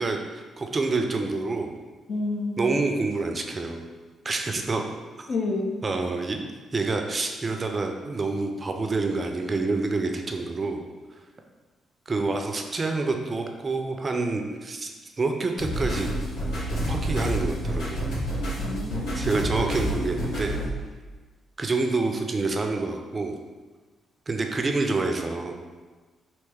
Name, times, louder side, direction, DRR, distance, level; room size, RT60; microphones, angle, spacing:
voice 1, 0.0-1.7 2.6-3.9 4.2-4.8 5.2-5.3 5.8-6.4 6.7-10.8 12.1-14.9 15.2-16.1 16.9-18.1 19.1-20.6 21.6-23.3 24.3-25.5, right 3 dB, 35° right, 4 dB, 0.4 m, -27 dB
voice 2, 2.1-2.8 5.3-5.7 18.6-19.2, left 2 dB, 50° left, 1 dB, 0.5 m, -29 dB
sound 1, 15.6-20.7, equal, 70° left, 1.4 m, -28 dB
3.2 x 2.9 x 3.3 m, 1.3 s
figure-of-eight pair, 40°, 0 cm